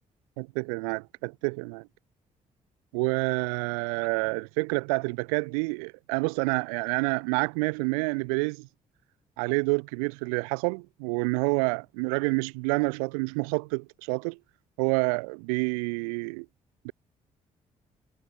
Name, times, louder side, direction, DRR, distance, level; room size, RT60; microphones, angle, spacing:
voice 1, 0.4-1.9 2.9-8.7 9.4-14.4 14.8-16.5 16.8-16.9, right 34 dB, 80° right, 1.2 m, -28 dB
hypercardioid pair, 45°, 18 cm